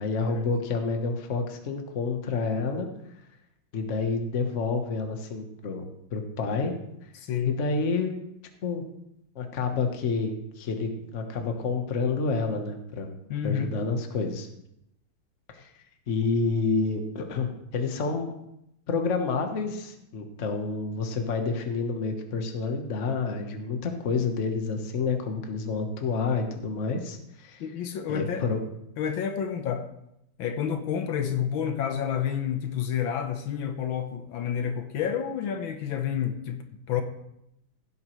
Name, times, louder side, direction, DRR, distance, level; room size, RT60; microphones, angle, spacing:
voice 1, 0.0-2.9 3.7-5.8 6.1-6.7 7.5-8.1 8.6-8.8 9.3-13.2 13.4-14.5 15.5-15.7 16.1-18.3 18.9-27.6 28.1-28.6, left 4 dB, 40° left, 5 dB, 1.3 m, -29 dB
voice 2, 7.2-7.6 13.3-13.7 27.6-28.4 29.0-29.9 30.4-37.0, left 8 dB, 75° left, 7 dB, 1.6 m, -29 dB
16.0 x 8.8 x 3.1 m, 0.81 s
omnidirectional pair, 2.2 m